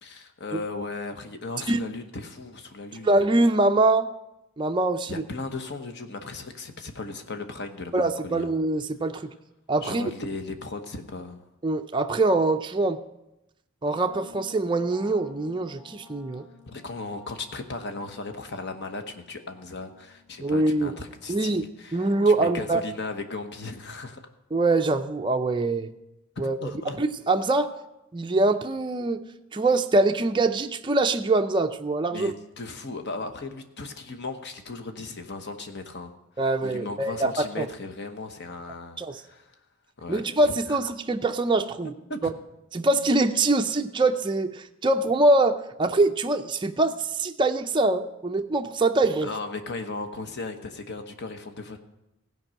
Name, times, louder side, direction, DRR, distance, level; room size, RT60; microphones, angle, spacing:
voice 1, 0.0-3.2 5.1-8.5 9.8-11.4 16.7-24.2 26.4-27.0 32.1-39.5 40.0-40.8 42.1-42.3 49.2-51.8, left 3 dB, 50° left, 7 dB, 1.1 m, -37 dB
voice 2, 3.0-4.1 4.6-5.2 7.9-9.3 9.7-10.1 11.6-13.0 13.8-16.4 20.4-20.9 21.3-21.6 21.9-22.8 24.5-25.9 26.4-26.7 27.0-27.7 28.1-29.3 29.5-32.3 36.4-37.7 39.0-39.2 40.1-41.9 42.7-49.3, right 2 dB, 20° right, 5 dB, 0.4 m, -24 dB
sound 1, 14.0-21.6, left 5 dB, 15° left, 2.2 m, -52 dB
16.0 x 5.4 x 7.5 m, 0.91 s
head